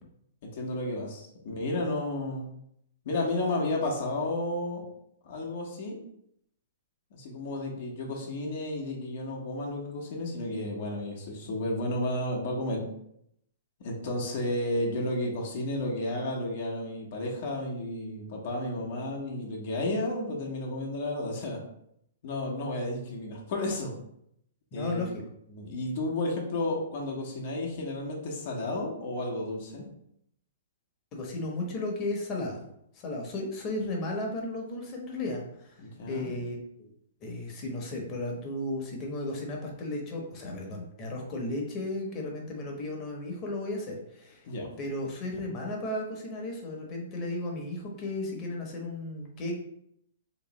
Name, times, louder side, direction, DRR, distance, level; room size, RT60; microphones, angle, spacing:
voice 1, 0.4-2.5 3.0-4.8 5.2-6.0 7.1-12.8 13.8-21.6 22.2-23.9 24.7-25.1 25.5-29.9 35.8-36.4 44.5-44.7, left 1 dB, 55° left, -1 dB, 0.9 m, -32 dB
voice 2, 24.7-25.2 31.1-32.7 32.9-36.9 37.2-44.5 44.8-49.5, left 2 dB, 30° left, 0 dB, 1.0 m, -34 dB
3.4 x 3.1 x 3.0 m, 0.75 s
hypercardioid pair, 125°, 0 cm